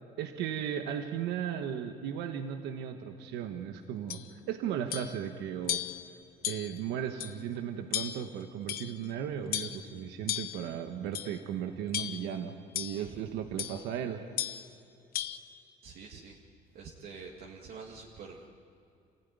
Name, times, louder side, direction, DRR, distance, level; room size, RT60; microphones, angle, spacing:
voice 1, 0.2-4.2 4.5-5.8 6.5-14.2, right 9 dB, 90° right, 6 dB, 1.3 m, -36 dB
sound 1, 4.1-4.3 4.9-5.2 5.7-6.1 6.4-6.8 7.2-7.3 7.9-8.3 8.7-9.1 9.5-9.8 10.3-10.6 11.1-11.4 11.9-12.3 12.8-13.0 13.6-13.8 14.4-14.7 15.1-15.4, left 11 dB, 60° left, 1.0 m, -35 dB
voice 2, 12.9-13.2 14.5-14.6 15.8-16.4 16.7-18.5, right 5 dB, 65° right, -2 dB, 2.1 m, -47 dB
27.0 x 15.5 x 9.5 m, 2.5 s
cardioid pair, 110°, 17 cm